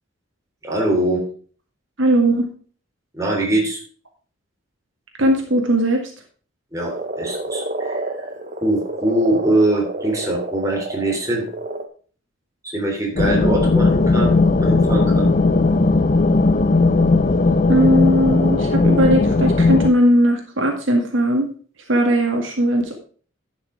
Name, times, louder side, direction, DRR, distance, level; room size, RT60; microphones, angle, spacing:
voice 1, 0.6-1.2 3.1-3.8 6.7-8.3 8.6-11.4 12.6-14.3 14.6-15.3, right 1 dB, 15° right, -2 dB, 3.3 m, -22 dB
voice 2, 2.0-2.5 5.2-6.1 17.7-21.5 21.9-23.0, equal, 65° right, 2 dB, 2.0 m, -18 dB
Frog, 6.8-11.9, right 2 dB, 40° right, 1.1 m, -29 dB
sound 1, 13.2-19.9, left 3 dB, 40° left, 0.5 m, -17 dB
sound 2, 13.8-19.7, left 1 dB, 15° left, 0.9 m, -33 dB
11.0 x 6.1 x 4.9 m, 0.41 s
head